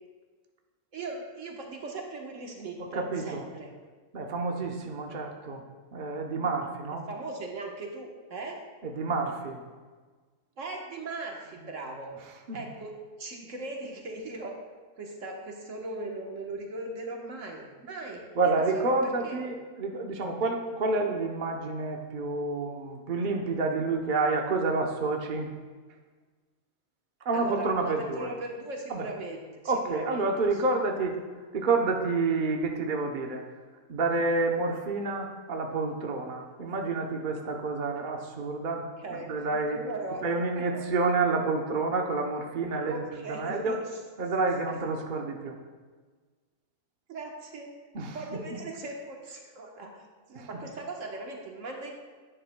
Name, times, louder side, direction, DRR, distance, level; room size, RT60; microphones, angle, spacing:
voice 1, 0.9-3.7 5.1-5.2 7.1-8.6 10.6-12.1 12.5-14.6 15.0-18.9 19.2-19.4 27.3-30.3 39.0-40.2 40.5-40.8 42.9-43.8 47.1-47.7 48.1-50.0 50.3-52.0, right 2 dB, 60° right, 0 dB, 1.4 m, -39 dB
voice 2, 2.8-3.4 4.1-5.6 5.9-7.1 8.8-9.6 12.5-12.6 18.4-25.5 27.2-28.3 28.9-29.1 29.6-31.2 31.5-33.4 33.9-39.8 40.2-43.8 44.2-45.6 47.9-48.2 50.3-50.5, right 3 dB, 45° right, 2 dB, 0.8 m, -29 dB
10.5 x 10.0 x 2.2 m, 1.4 s
omnidirectional pair, 1.5 m